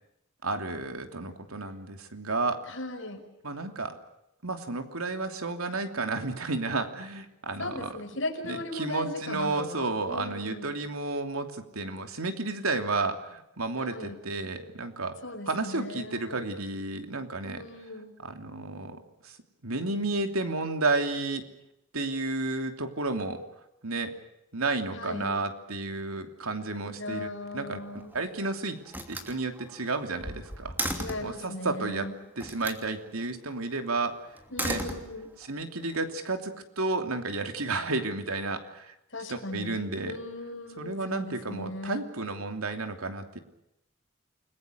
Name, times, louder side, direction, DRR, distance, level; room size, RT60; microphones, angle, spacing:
voice 1, 0.4-2.6 3.4-4.0 4.4-8.0 8.4-15.2 15.5-17.6 18.2-19.4 19.6-21.5 21.9-23.4 23.8-24.2 24.5-27.3 27.5-27.8 28.1-28.8 29.1-30.7 31.2-32.1 32.4-34.2 34.6-34.9 35.5-38.9 39.3-40.2 40.8-43.4, right 3 dB, 90° right, 6 dB, 3.0 m, -32 dB
voice 2, 2.7-3.2 7.6-10.9 13.8-14.2 15.2-16.5 17.6-18.2 24.9-25.4 27.0-28.1 30.9-32.2 34.5-35.3 39.1-42.1, left 2 dB, 60° left, 4 dB, 5.5 m, -38 dB
Slam, 27.8-28.4 28.9-31.4 32.4-32.9 34.4-35.5, right 1 dB, 10° right, 2.9 m, -35 dB
29.5 x 21.5 x 6.7 m, 0.85 s
head